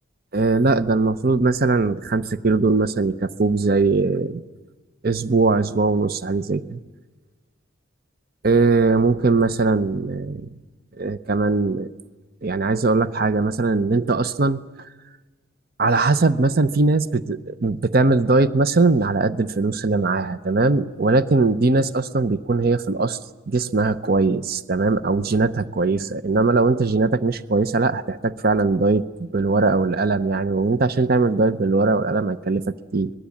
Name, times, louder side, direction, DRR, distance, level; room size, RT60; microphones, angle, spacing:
voice 1, 0.3-4.4 5.0-6.8 8.4-10.5 11.0-11.9 12.4-14.6 15.8-23.2 23.5-33.1, right 3 dB, 50° right, 14 dB, 0.7 m, -20 dB
25.0 x 20.5 x 8.5 m, 1.3 s
head